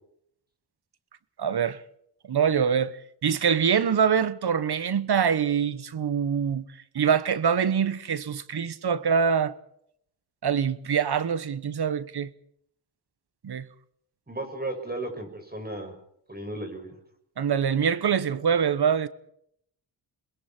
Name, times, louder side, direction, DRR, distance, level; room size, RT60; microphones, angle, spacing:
voice 1, 1.4-1.8 2.3-6.6 6.9-9.5 10.4-12.3 13.4-13.7 17.4-19.1, right 7 dB, 60° right, 1.2 m, -24 dB
voice 2, 14.3-15.9 16.3-16.9, right 1 dB, 20° right, 6.4 m, -34 dB
28.5 x 21.0 x 4.5 m
cardioid pair, 60°, 43 cm